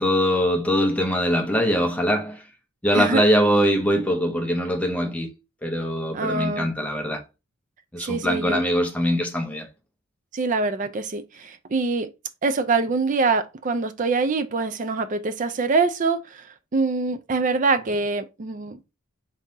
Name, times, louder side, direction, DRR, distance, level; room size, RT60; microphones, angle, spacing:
voice 1, 0.0-2.4 2.8-5.3 5.6-7.2 7.9-9.7, equal, 5° left, 0.6 m, -22 dB
voice 2, 2.9-3.2 6.1-6.7 8.0-8.6 10.3-12.1 12.4-18.8, right 4 dB, 35° right, 0.4 m, -24 dB
4.0 x 3.7 x 2.6 m
head